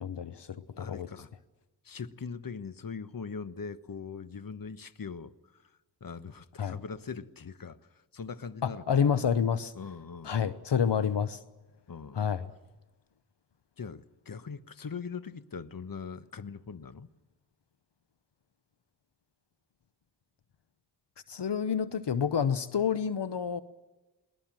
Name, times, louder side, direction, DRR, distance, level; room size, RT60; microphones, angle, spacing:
voice 1, 0.0-1.1 6.6-6.8 8.6-9.7 10.2-11.4 12.1-12.5 21.3-23.6, left 7 dB, 75° left, 0.9 m, -29 dB
voice 2, 0.8-1.3 1.8-5.6 6.0-7.8 8.1-9.2 9.7-10.6 11.9-12.2 13.8-17.1, left 5 dB, 50° left, 1.1 m, -41 dB
21.0 x 20.5 x 7.5 m
cardioid pair, 50°, 42 cm